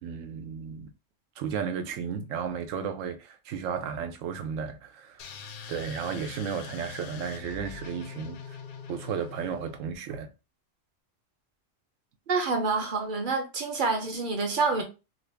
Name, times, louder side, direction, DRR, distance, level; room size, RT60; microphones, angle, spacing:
voice 1, 0.0-0.9 1.4-5.3 5.7-8.6 8.9-10.3, right 7 dB, 85° right, 1.0 m, -34 dB
sound 1, 5.2-9.9, left 7 dB, 60° left, 0.5 m, -43 dB
voice 2, 12.3-14.8, right 4 dB, 45° right, 0.8 m, -27 dB
2.9 x 2.6 x 3.3 m
omnidirectional pair, 1.3 m